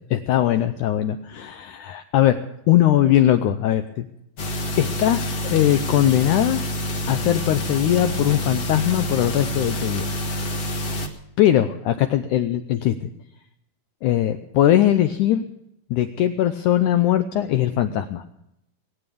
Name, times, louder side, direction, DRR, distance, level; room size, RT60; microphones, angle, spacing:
voice 1, 0.1-4.1 4.4-4.5 4.8-6.6 7.1-10.1 11.4-13.1 14.0-15.5 15.9-18.2, left 12 dB, 80° left, 9 dB, 1.7 m, -20 dB
sound 1, 4.4-11.1, equal, 60° left, 0.9 m, -27 dB
20.5 x 9.3 x 6.9 m, 0.80 s
omnidirectional pair, 4.3 m